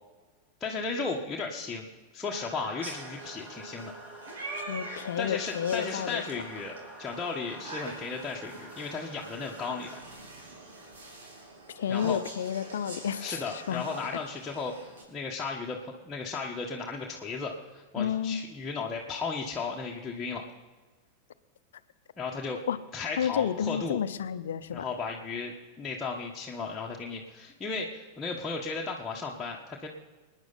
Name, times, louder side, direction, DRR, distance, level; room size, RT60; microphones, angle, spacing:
voice 1, 0.6-1.9 2.1-3.9 5.2-9.9 11.9-12.2 13.2-20.4 22.2-22.6 22.9-24.0 24.7-29.9, left 4 dB, 15° left, -3 dB, 1.5 m, -35 dB
sound 1, 2.2-10.0, right 2 dB, 20° right, 2.6 m, -47 dB
sound 2, 2.8-15.0, right 2 dB, 65° right, 3.2 m, -45 dB
voice 2, 4.7-6.4 11.8-13.8 18.0-18.4 22.7-22.8 23.2-24.9, left 8 dB, 65° left, 13 dB, 0.7 m, -31 dB
25.5 x 9.9 x 4.1 m, 1.3 s
figure-of-eight pair, 90°, 0 cm